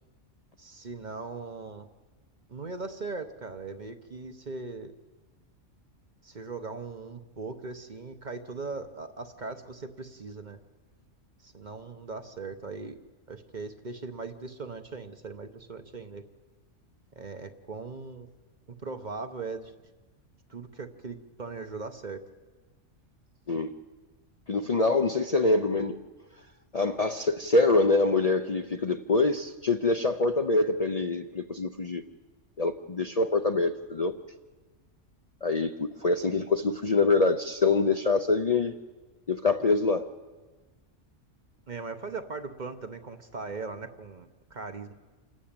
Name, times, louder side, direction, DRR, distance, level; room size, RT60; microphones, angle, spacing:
voice 1, 0.6-1.9 2.5-4.9 6.2-10.6 11.4-12.9 13.3-16.2 17.2-18.3 18.8-19.7 20.5-22.3 41.7-44.9, right 4 dB, 40° right, 8 dB, 1.0 m, -39 dB
voice 2, 24.5-26.0 26.7-32.0 32.6-34.1 35.4-38.7 39.3-40.1, left 3 dB, 40° left, 7 dB, 0.7 m, -25 dB
27.5 x 12.5 x 8.8 m, 1.3 s
omnidirectional pair, 1.3 m